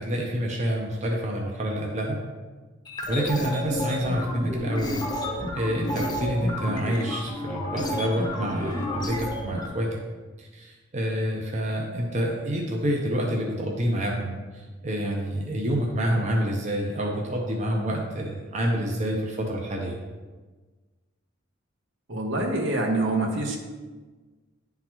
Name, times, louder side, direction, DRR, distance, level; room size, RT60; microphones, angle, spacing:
voice 1, 0.0-2.2 3.1-5.0 5.5-10.0 10.4-20.0, equal, 35° right, 0 dB, 0.6 m, -28 dB
sound 1, 2.8-9.7, left 1 dB, 20° left, 0.8 m, -31 dB
voice 2, 22.1-23.6, right 2 dB, 75° right, 1 dB, 1.0 m, -25 dB
9.7 x 3.8 x 3.0 m, 1.3 s
head